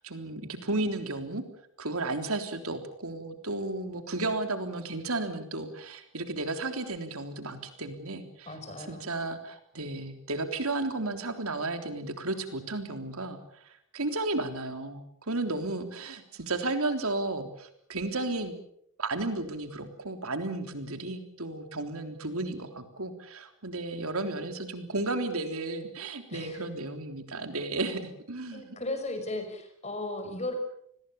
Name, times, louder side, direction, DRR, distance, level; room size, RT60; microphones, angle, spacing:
voice 1, 0.0-1.4 1.8-18.5 19.0-28.8, right 2 dB, 80° right, 7 dB, 3.6 m, -33 dB
voice 2, 8.5-9.0 26.3-26.6 28.5-30.5, left 2 dB, 30° left, 7 dB, 5.7 m, -36 dB
29.5 x 21.0 x 7.1 m, 0.72 s
head